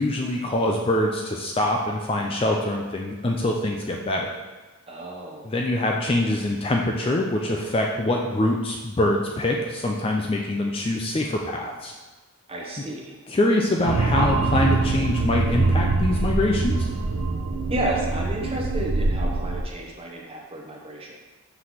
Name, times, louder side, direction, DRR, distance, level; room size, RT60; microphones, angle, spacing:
voice 1, 0.0-4.3 5.4-11.9 13.3-16.9, left 1 dB, 25° left, 0 dB, 0.4 m, -24 dB
voice 2, 4.9-5.5 12.5-13.2 17.7-21.2, right 1 dB, 25° right, -2 dB, 1.0 m, -31 dB
sound 1, 13.8-19.6, right 3 dB, 80° right, 0.5 m, -24 dB
5.9 x 3.2 x 5.6 m, 1.2 s
head